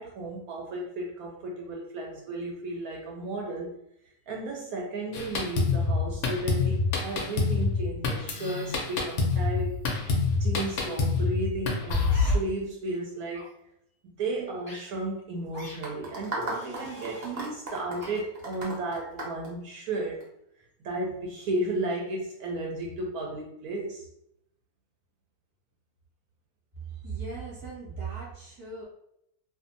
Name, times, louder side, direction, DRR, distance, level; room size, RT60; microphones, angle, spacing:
voice 1, 0.0-3.7 4.3-9.8 10.3-13.5 14.0-20.2 20.8-24.1, right 2 dB, 70° right, -1 dB, 1.0 m, -34 dB
Drum kit, 5.1-12.4, left 3 dB, 65° left, 0.7 m, -27 dB
sound 1, 12.1-12.4 13.3-13.5 14.6-14.8 15.5-15.8 16.5-17.3 18.0-18.1, equal, 20° left, 0.9 m, -45 dB
sound 2, 15.8-20.2, right 2 dB, 50° right, 0.7 m, -36 dB
voice 2, 27.0-28.8, right 5 dB, 15° right, -5 dB, 0.8 m, -37 dB
2.6 x 2.4 x 2.5 m, 0.74 s
omnidirectional pair, 1.7 m